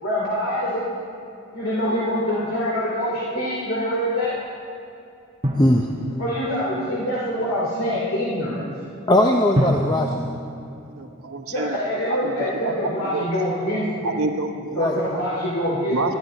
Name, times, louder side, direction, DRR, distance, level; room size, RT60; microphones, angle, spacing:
voice 1, 0.0-0.8 1.5-4.4 6.2-8.6 11.5-14.1 14.7-16.2, equal, 70° left, -6 dB, 2.7 m, -25 dB
Drum, 5.4-6.9 9.6-11.7, equal, 25° right, 1.1 m, -28 dB
voice 2, 5.5-6.2 9.1-10.3 14.7-14.9, left 1 dB, 20° left, 1 dB, 0.6 m, -20 dB
voice 3, 11.0-11.8 12.5-12.7 13.1-13.2 14.0-14.9 15.9-16.1, right 3 dB, 90° right, 5 dB, 0.9 m, -27 dB
20.5 x 12.5 x 4.2 m, 2.6 s
head